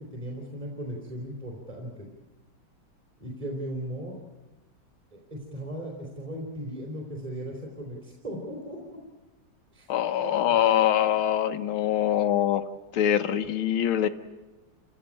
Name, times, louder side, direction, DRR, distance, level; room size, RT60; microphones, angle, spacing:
voice 1, 0.1-2.1 3.2-4.2 5.1-8.8 9.7-9.9 10.2-10.7, right 1 dB, 15° right, -1 dB, 3.5 m, -37 dB
voice 2, 9.9-12.6 12.9-14.1, left 10 dB, 75° left, 10 dB, 1.8 m, -24 dB
28.5 x 16.0 x 8.7 m, 1.1 s
omnidirectional pair, 2.3 m